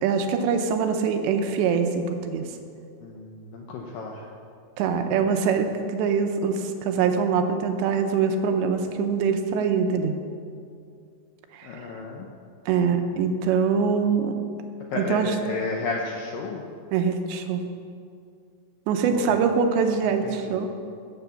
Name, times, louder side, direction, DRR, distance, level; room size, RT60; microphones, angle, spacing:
voice 1, 0.0-2.5 4.8-10.1 11.5-11.7 12.7-14.3 15.1-15.3 16.9-17.6 18.9-20.7, right 6 dB, 80° right, 6 dB, 3.0 m, -23 dB
voice 2, 3.0-4.3 11.6-12.3 14.9-16.6 19.1-19.6 20.0-20.6, left 4 dB, 80° left, 0 dB, 2.1 m, -33 dB
14.0 x 6.9 x 7.1 m, 2.4 s
omnidirectional pair, 5.2 m